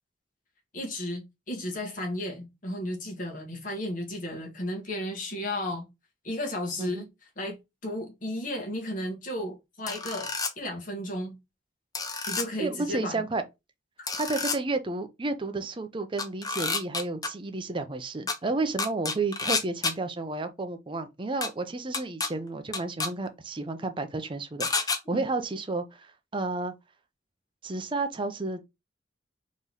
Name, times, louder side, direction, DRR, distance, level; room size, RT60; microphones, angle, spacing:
voice 1, 0.7-5.8 6.2-7.1 7.4-7.6 7.8-11.4 12.3-13.2 14.0-14.1 25.0-25.2, left 1 dB, 45° left, 1.5 m, -34 dB
sound 1, 9.9-10.5 12.0-12.5 14.1-14.6 16.2-17.3 18.3-18.4 18.8-19.9 21.4-21.5 21.9-22.3 22.7-23.1 24.6-25.0, left 4 dB, 20° left, 0.5 m, -29 dB
voice 2, 12.6-13.4 14.1-26.7 27.6-28.6, right 3 dB, 25° right, 0.6 m, -31 dB
3.9 x 3.1 x 4.0 m
head